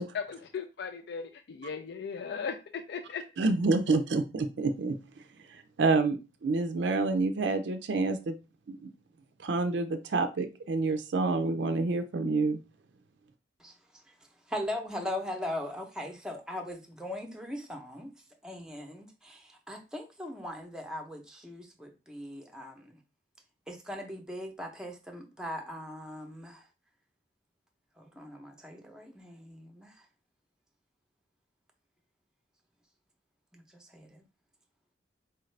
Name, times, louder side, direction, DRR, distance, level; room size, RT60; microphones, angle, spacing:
voice 1, 0.1-3.2, left 6 dB, 60° left, 0.4 m, -37 dB
voice 2, 3.4-5.0 5.5-8.3 8.7-8.9 9.4-12.6, right 3 dB, 65° right, 0.4 m, -28 dB
voice 3, 14.5-18.1 18.4-23.0 23.7-26.7 28.0-30.0 33.5-34.2, left 1 dB, 5° right, 0.7 m, -40 dB
4.5 x 2.4 x 3.2 m
head